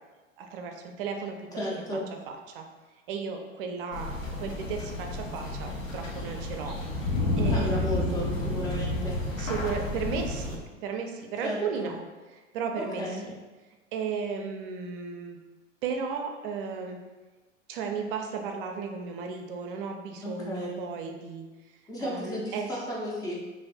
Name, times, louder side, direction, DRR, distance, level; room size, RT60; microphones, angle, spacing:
voice 1, 0.4-1.8 2.5-2.6 3.1-8.4 9.4-12.0 12.3-13.4 13.9-15.4 15.8-17.0 17.7-21.4 22.0-22.7, right 5 dB, 45° right, 3 dB, 0.5 m, -35 dB
voice 2, 1.6-2.1 7.5-9.2 11.4-11.9 12.8-13.2 20.2-20.7 21.9-23.3, equal, 10° left, -5 dB, 0.4 m, -34 dB
sound 1, 3.9-10.6, left 2 dB, 90° left, 0.7 m, -31 dB
2.5 x 2.4 x 3.3 m, 1.2 s
figure-of-eight pair, 95°, 37 cm